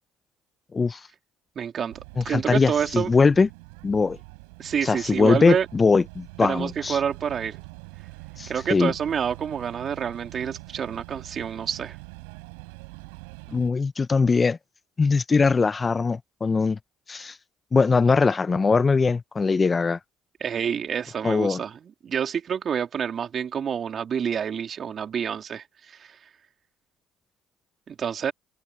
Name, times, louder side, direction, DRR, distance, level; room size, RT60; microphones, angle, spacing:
voice 1, 1.5-2.0 2.2-3.1 4.6-5.6 6.4-7.6 8.5-12.0 20.4-26.2 27.9-28.3, right 7 dB, 50° right, 3.4 m, -28 dB
sound 1, 1.9-13.7, right 32 dB, 85° right, 4.7 m, -44 dB
voice 2, 2.2-3.5 3.8-4.2 4.8-7.0 8.4-8.9 13.5-14.6 15.0-16.8 17.1-17.4 17.7-20.0 21.2-21.6, left 4 dB, 30° left, 0.5 m, -21 dB
hypercardioid pair, 65°, 0 cm